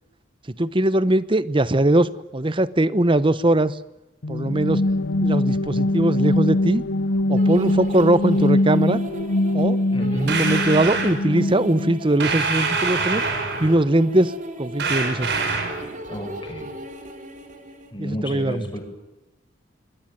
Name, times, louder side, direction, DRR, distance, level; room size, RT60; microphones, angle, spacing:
voice 1, 0.6-3.8 4.3-4.8 5.2-6.8 7.3-9.0 9.5-9.8 10.1-13.2 13.6-14.3 14.6-15.3 18.0-18.6, right 1 dB, 25° right, 16 dB, 1.0 m, -20 dB
sound 1, 4.2-12.0, left 1 dB, 75° left, 0.9 m, -22 dB
sound 2, 7.4-17.9, equal, 45° right, 3.5 m, -37 dB
voice 2, 9.9-10.4 16.1-16.7 17.9-18.8, equal, 25° left, 3 dB, 7.2 m, -31 dB
sound 3, 10.3-11.2 12.2-13.8 14.8-15.8, right 4 dB, 60° right, 5.5 m, -25 dB
26.0 x 21.0 x 9.1 m, 0.96 s
head